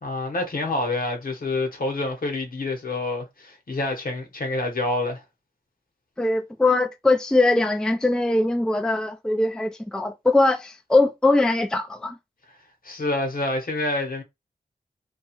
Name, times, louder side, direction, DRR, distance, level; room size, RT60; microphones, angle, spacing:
voice 1, 0.0-5.2 12.8-14.2, left 2 dB, 60° left, 1.0 m, -27 dB
voice 2, 6.2-12.2, left 2 dB, 5° left, 0.4 m, -21 dB
2.9 x 2.3 x 2.9 m
cardioid pair, 60°, 17 cm